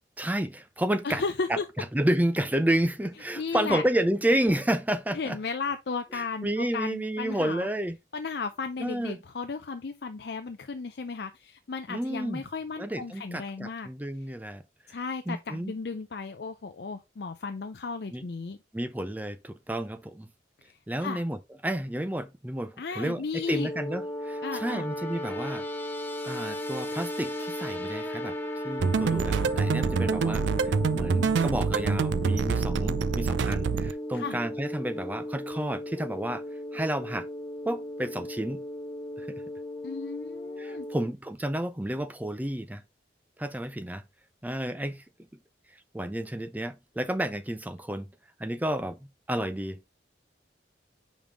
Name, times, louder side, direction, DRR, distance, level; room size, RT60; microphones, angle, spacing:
voice 1, 0.2-1.2 1.5-5.4 6.1-8.0 8.8-9.2 11.9-12.4 12.8-14.6 14.9-15.0 15.3-15.7 18.1-18.2 18.7-20.3 20.9-25.6 26.2-36.4 36.7-37.3 37.6-38.6 39.2-39.4 40.6-42.8 43.4-44.0 44.4-45.0 45.9-48.1 48.4-49.0 49.3-49.8, right 1 dB, 10° right, 0.5 m, -31 dB
voice 2, 1.0-1.6 3.4-3.8 5.1-7.7 8.1-13.9 14.9-18.6 20.6-21.2 22.8-23.7 24.4-24.9 34.1-34.4 39.8-40.9, left 4 dB, 60° left, 0.5 m, -35 dB
sound 1, 23.4-41.1, left 1 dB, 10° left, 0.8 m, -36 dB
sound 2, 28.8-33.9, right 5 dB, 80° right, 0.4 m, -26 dB
5.2 x 5.2 x 3.4 m
head